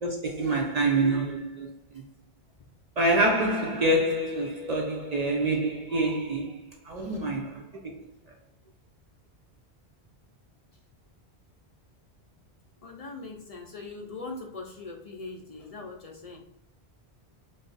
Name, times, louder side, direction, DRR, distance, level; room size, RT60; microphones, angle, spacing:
voice 1, 0.0-1.7 3.0-7.6, right 1 dB, 50° right, 0.5 m, -26 dB
voice 2, 12.8-16.4, left 3 dB, 50° left, 0.4 m, -41 dB
3.3 x 2.0 x 3.9 m
omnidirectional pair, 1.1 m